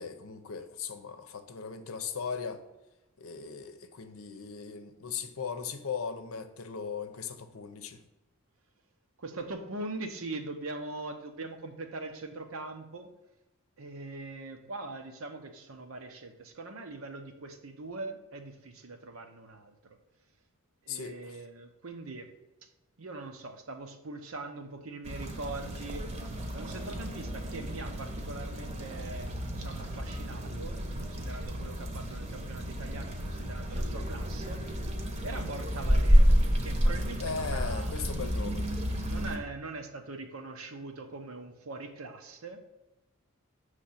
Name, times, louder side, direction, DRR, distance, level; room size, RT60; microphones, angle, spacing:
voice 1, 0.0-2.6 3.2-8.0 20.9-21.4 37.2-38.7, left 6 dB, 80° left, 8 dB, 0.7 m, -38 dB
voice 2, 9.2-13.1 13.8-20.0 20.8-22.3 23.0-34.9 35.2-36.4 36.6-38.1 39.1-42.6, right 2 dB, 80° right, 5 dB, 0.8 m, -42 dB
sound 1, 25.0-39.4, equal, 30° right, 0.9 m, -30 dB
6.4 x 3.3 x 5.7 m, 1.0 s
head